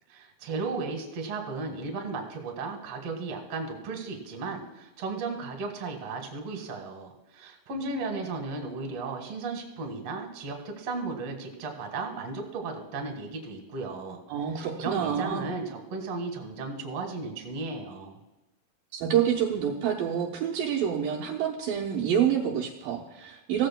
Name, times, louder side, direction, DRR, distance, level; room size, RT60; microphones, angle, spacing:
voice 1, 0.1-14.2 14.8-18.2, right 3 dB, 50° right, 3 dB, 2.4 m, -35 dB
voice 2, 14.3-15.5 18.9-23.7, right 9 dB, 75° right, -2 dB, 2.5 m, -27 dB
17.0 x 14.0 x 2.2 m, 1.0 s
omnidirectional pair, 4.3 m